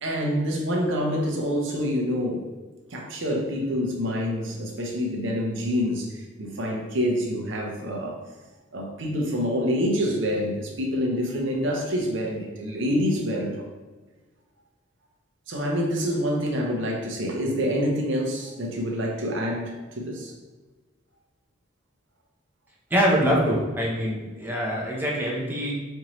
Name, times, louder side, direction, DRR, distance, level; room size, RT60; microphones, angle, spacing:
voice 1, 0.0-2.5 2.9-8.2 8.7-13.7 15.5-20.3, equal, 70° right, 0 dB, 0.7 m, -27 dB
voice 2, 22.9-25.7, equal, 10° right, -4 dB, 0.6 m, -24 dB
4.5 x 2.6 x 3.0 m, 1.3 s
head